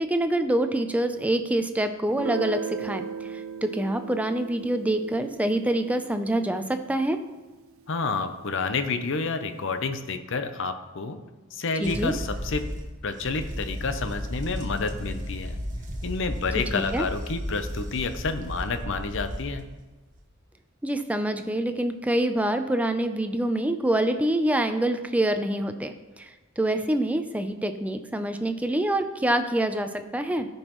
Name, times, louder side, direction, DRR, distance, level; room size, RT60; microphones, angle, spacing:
voice 1, 0.0-7.2 11.8-12.2 16.7-17.0 20.8-30.5, right 1 dB, 5° right, 8 dB, 0.4 m, -26 dB
Guitar, 2.1-7.6, right 6 dB, 80° right, 0.6 m, -37 dB
voice 2, 7.9-11.2 11.5-12.6 13.0-15.6 16.0-19.6, left 4 dB, 60° left, 9 dB, 0.7 m, -29 dB
sound 1, 11.8-19.8 20.1-20.3, equal, 40° right, 1.1 m, -34 dB
13.5 x 5.4 x 3.0 m, 1.2 s
head